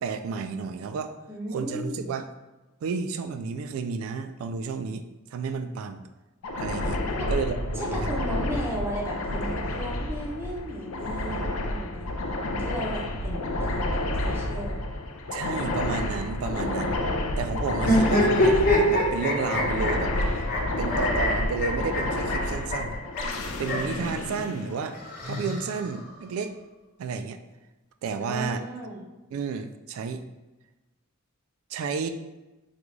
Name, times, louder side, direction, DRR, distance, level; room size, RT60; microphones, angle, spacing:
voice 1, 0.0-1.2 1.5-2.3 2.8-5.0 5.3-6.0 6.5-7.0 7.3-8.2 15.3-17.0 17.4-20.5 20.8-23.0 23.6-25.0 25.3-26.6 27.0-27.4 28.0-28.6 29.3-30.2 31.7-32.1, right 5 dB, 75° right, 9 dB, 0.3 m, -31 dB
voice 2, 1.3-2.1 7.1-7.3 7.7-12.1 12.4-14.8 28.2-29.0, equal, 10° right, -3 dB, 0.6 m, -35 dB
sound 1, 6.4-25.3, left 1 dB, 85° left, 0.4 m, -30 dB
sound 2, 17.8-24.0 24.9-26.1, left 1 dB, 45° left, 1.0 m, -25 dB
3.7 x 2.3 x 3.1 m, 1.1 s
head